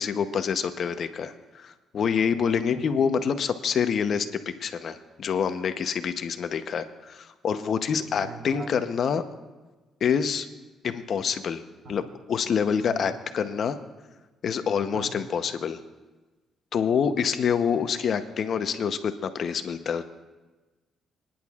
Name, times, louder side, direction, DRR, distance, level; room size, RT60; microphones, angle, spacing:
voice 1, 0.0-4.3 4.6-9.2 10.0-10.5 10.8-11.6 11.9-13.8 14.4-15.8 16.7-20.0, left 7 dB, 60° left, 9 dB, 0.8 m, -26 dB
voice 2, 8.0-8.8 11.8-11.9 12.8-13.0 14.9-15.1, right 5 dB, 70° right, 5 dB, 1.4 m, -42 dB
26.0 x 10.5 x 2.4 m, 1.2 s
cardioid pair, 90°, 0 cm